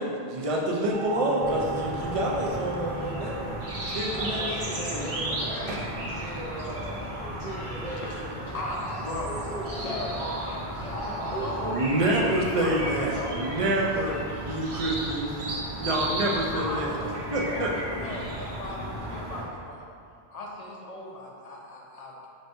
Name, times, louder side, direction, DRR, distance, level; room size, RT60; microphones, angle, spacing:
voice 1, 0.0-3.6 3.9-4.5 4.9-5.1 5.7-5.8 11.7-15.4 15.8-17.0 17.3-18.0, right 1 dB, 40° right, -2 dB, 0.5 m, -27 dB
sound 1, 0.9-15.7, right 3 dB, 15° right, 1.2 m, -41 dB
sound 2, 1.4-19.4, right 1 dB, 85° right, 1.2 m, -34 dB
voice 2, 4.1-10.2 11.0-13.7 19.1-19.2, right 1 dB, 60° right, -11 dB, 1.1 m, -39 dB
voice 3, 6.0-6.5 7.0-7.1 8.0-8.1 8.5-10.2 10.5-11.6 12.6-13.4 16.5-19.9 20.3-22.3, left 1 dB, 45° left, -3 dB, 0.6 m, -38 dB
5.2 x 3.3 x 2.6 m, 2.4 s
omnidirectional pair, 1.0 m